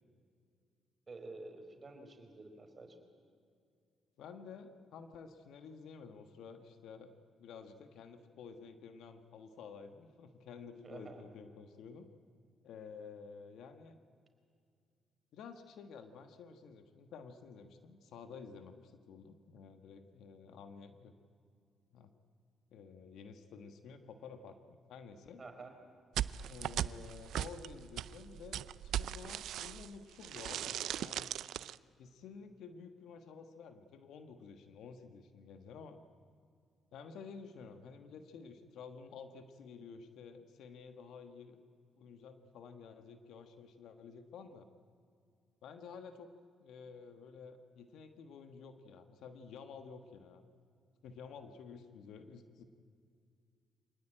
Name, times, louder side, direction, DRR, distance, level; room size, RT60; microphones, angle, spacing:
voice 1, 1.1-3.0 10.8-11.2 25.4-25.7, right 3 dB, 30° right, 5 dB, 4.4 m, -50 dB
voice 2, 4.2-7.1 7.4-12.1 12.6-14.0 15.3-21.1 21.9-22.1 22.7-25.4 26.4-31.3 32.0-36.0 36.9-41.6 42.0-44.6 45.6-50.5 51.0-52.6, left 5 dB, 80° left, 8 dB, 1.4 m, -51 dB
sound 1, 26.2-30.0 30.2-31.8, right 11 dB, 75° right, 0.5 m, -38 dB
25.5 x 19.0 x 8.9 m, 2.3 s
cardioid pair, 90°, 0 cm